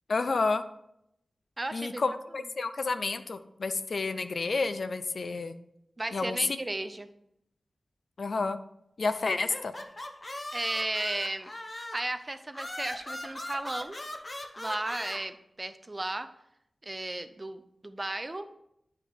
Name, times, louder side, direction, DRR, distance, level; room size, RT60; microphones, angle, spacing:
voice 1, 0.1-0.6 1.7-5.6 6.1-6.4 8.2-8.6 9.0-9.7, left 3 dB, 60° left, 11 dB, 0.4 m, -30 dB
voice 2, 1.6-2.0 6.0-7.1 10.5-14.0 14.6-16.3 16.8-18.5, right 2 dB, 25° right, 10 dB, 0.4 m, -35 dB
sound 1, 9.3-12.1 12.5-15.2, left 1 dB, 30° left, 0.7 m, -40 dB
8.9 x 3.6 x 4.6 m, 0.78 s
wide cardioid pair, 110°, 0 cm